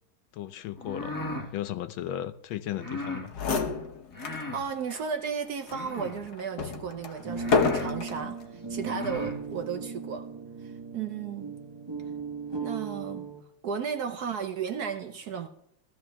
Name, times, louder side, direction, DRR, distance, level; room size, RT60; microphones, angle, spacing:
voice 1, 0.3-1.1 1.5-3.3, left 12 dB, 80° left, 1.4 m, -35 dB
sound 1, 0.7-1.5 2.7-3.3 4.1-4.7 5.7-6.3 7.0-7.1 7.4-7.9 8.7-9.4, left 2 dB, 15° left, 0.9 m, -37 dB
sound 2, 3.0-3.1 3.3-4.5 4.9-5.0 5.7-8.3 9.0-9.4, left 4 dB, 55° left, 1.5 m, -29 dB
voice 2, 4.2-10.3 10.6-11.5 12.6-13.3 13.6-15.5, right 6 dB, 60° right, 1.1 m, -34 dB
sound 3, 7.2-13.4, right 5 dB, 35° right, 0.4 m, -37 dB
14.5 x 14.0 x 3.4 m
omnidirectional pair, 2.2 m